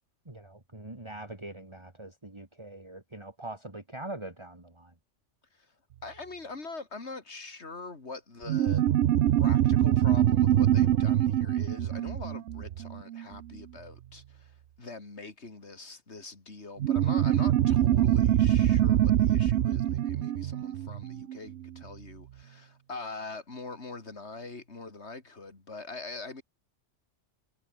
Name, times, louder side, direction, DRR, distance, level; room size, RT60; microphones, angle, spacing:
voice 1, 0.2-4.9, right 2 dB, 25° right, 2.9 m, -43 dB
voice 2, 6.0-8.9 9.4-26.4, left 3 dB, 65° left, 3.5 m, -43 dB
sound 1, 8.5-13.4 16.8-21.7, right 11 dB, 75° right, 1.0 m, -24 dB
omnidirectional pair, 1.2 m